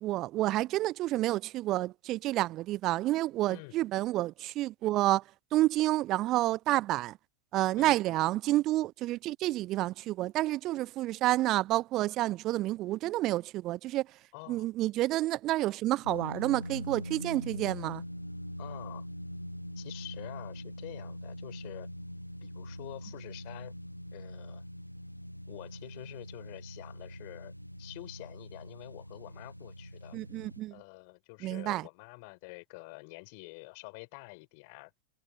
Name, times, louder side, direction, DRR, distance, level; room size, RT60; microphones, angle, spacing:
voice 1, 0.0-5.2 5.5-7.2 7.5-14.1 14.5-18.0 30.1-30.7 31.4-31.9, right 16 dB, 35° right, 0.7 m, -29 dB
voice 2, 3.5-3.8 7.8-8.0 14.3-14.7 18.6-19.1 19.8-21.9 22.4-23.7 24.1-24.6 25.5-27.5 27.8-30.2 30.7-34.9, left 32 dB, 45° left, 7.3 m, -47 dB
sound 1, 16.0-30.6, equal, 90° left, 0.8 m, -43 dB
figure-of-eight pair, 90°, 0 cm